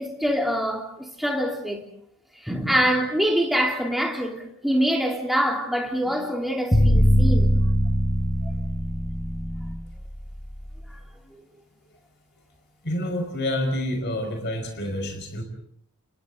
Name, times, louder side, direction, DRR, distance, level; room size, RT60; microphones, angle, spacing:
voice 1, 0.0-1.9 2.4-7.5, equal, ahead, 3.2 m, -25 dB
sound 1, 6.7-10.8, equal, 20° left, 1.5 m, -21 dB
voice 2, 12.8-15.4, left 1 dB, 50° left, 5.2 m, -28 dB
30.0 x 29.0 x 3.9 m
head